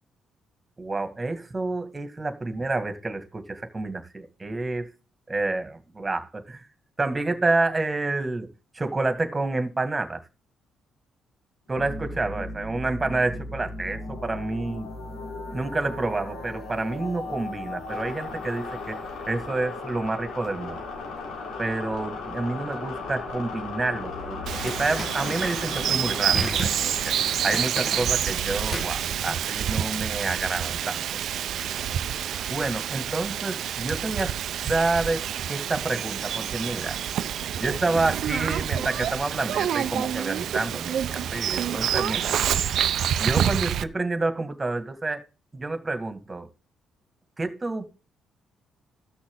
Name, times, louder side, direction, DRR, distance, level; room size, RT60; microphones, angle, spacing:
voice 1, 0.8-4.9 5.3-6.6 7.0-8.5 8.7-10.2 11.7-14.9 15.5-19.0 19.3-20.8 21.6-27.1 27.4-31.0 32.5-37.0 37.6-42.3 43.2-45.2 45.5-46.5 47.4-47.9, right 2 dB, 20° right, 2.1 m, -29 dB
sound 1, 11.8-30.2, left 3 dB, 80° left, 3.9 m, -37 dB
Bird vocalization bird call bird song, 24.5-43.8, right 9 dB, 70° right, 0.6 m, -28 dB
sound 2, 24.7-29.7, left 1 dB, 20° left, 1.6 m, -37 dB
14.5 x 6.3 x 3.8 m
cardioid pair, 90°, 0 cm